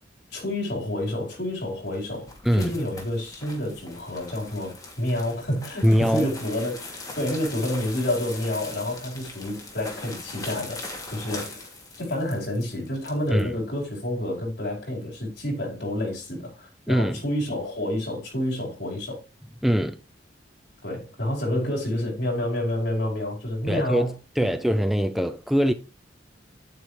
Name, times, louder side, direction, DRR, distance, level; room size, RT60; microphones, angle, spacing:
voice 1, 0.3-6.8 7.1-10.8 11.1-11.7 12.0-19.2 20.8-24.1, left 1 dB, 60° left, 4.8 m, -29 dB
sound 1, 1.7-13.5, left 2 dB, 20° left, 2.8 m, -41 dB
voice 2, 5.8-6.3 13.3-13.5 16.9-17.2 19.6-20.0 23.7-25.7, equal, ahead, 0.4 m, -22 dB
9.9 x 9.3 x 3.3 m
head